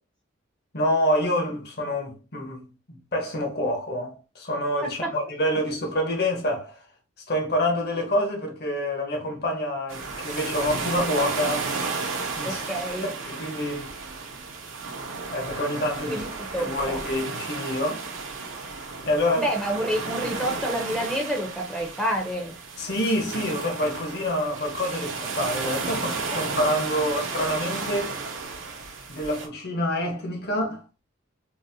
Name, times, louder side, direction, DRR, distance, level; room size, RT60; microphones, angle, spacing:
voice 1, 0.7-6.8 7.3-11.7 12.4-12.6 13.0-13.9 15.3-16.3 16.6-18.0 19.1-19.5 22.8-28.2 29.1-30.8, left 1 dB, 50° left, 0.9 m, -27 dB
sound 1, 9.9-29.5, right 4 dB, 85° right, 0.8 m, -33 dB
voice 2, 12.4-13.1 16.1-17.0 19.3-22.5, equal, 5° left, 0.5 m, -28 dB
3.9 x 2.0 x 2.6 m
head